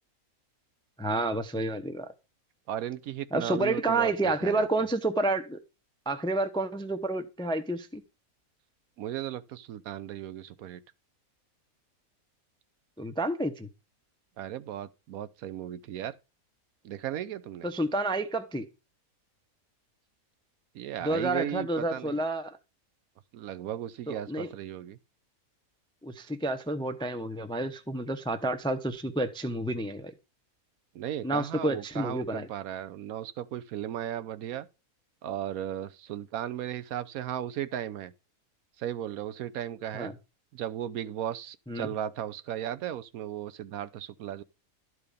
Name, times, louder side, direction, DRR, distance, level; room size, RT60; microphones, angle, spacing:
voice 1, 1.0-2.1 3.3-5.6 6.1-8.0 13.0-13.7 17.6-18.7 21.0-22.6 24.1-24.5 26.0-30.1 31.2-32.5 39.9-40.1 41.7-41.9, right 2 dB, 5° left, 0.4 m, -30 dB
voice 2, 2.7-4.7 9.0-10.8 14.4-16.2 16.8-17.7 20.7-22.2 23.3-25.0 30.9-34.7 35.2-38.1 38.8-40.1 40.5-44.4, right 11 dB, 80° right, 1.1 m, -36 dB
12.0 x 4.8 x 4.9 m
omnidirectional pair, 1.5 m